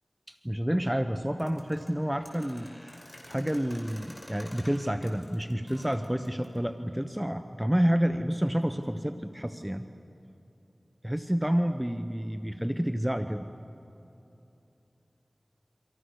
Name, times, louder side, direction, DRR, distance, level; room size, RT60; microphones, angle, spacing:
voice 1, 0.3-2.7 3.3-9.9 11.0-13.5, equal, 10° right, 8 dB, 0.9 m, -29 dB
sound 1, 1.4-6.7, left 1 dB, 20° left, 5.8 m, -50 dB
29.0 x 25.0 x 6.5 m, 2.9 s
wide cardioid pair, 50°, 0 cm